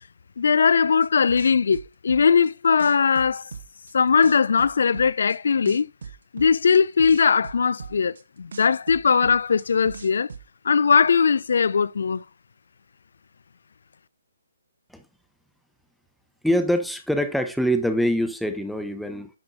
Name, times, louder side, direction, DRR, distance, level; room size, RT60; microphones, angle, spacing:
voice 1, 0.4-3.4 3.9-5.9 6.3-10.3 10.6-12.2, left 6 dB, 65° left, 0.4 m, -20 dB
sound 1, 1.0-2.5 2.8-3.9 4.2-5.4 5.7-8.2 8.5-10.4, right 5 dB, 65° right, 1.2 m, -39 dB
voice 2, 16.4-19.3, equal, ahead, 1.0 m, -24 dB
10.5 x 6.0 x 2.7 m
figure-of-eight pair, 145°, 0 cm